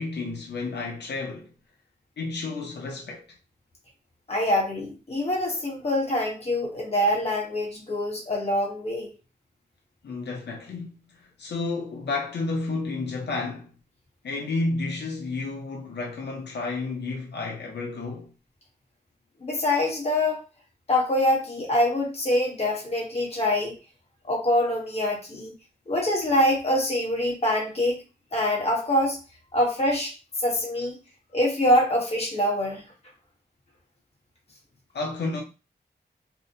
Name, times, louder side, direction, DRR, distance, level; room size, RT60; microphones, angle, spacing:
voice 1, 0.0-1.5 2.2-3.2 10.0-13.7 14.2-18.3 34.9-35.4, left 3 dB, 75° left, 0.6 m, -31 dB
voice 2, 4.3-9.1 19.4-20.4 20.9-23.7 24.3-25.5 25.9-28.0 28.3-29.2 29.5-30.1 30.4-31.0 31.3-32.8, left 1 dB, 35° left, 1.0 m, -24 dB
2.7 x 2.0 x 2.6 m
wide cardioid pair, 135°, 18 cm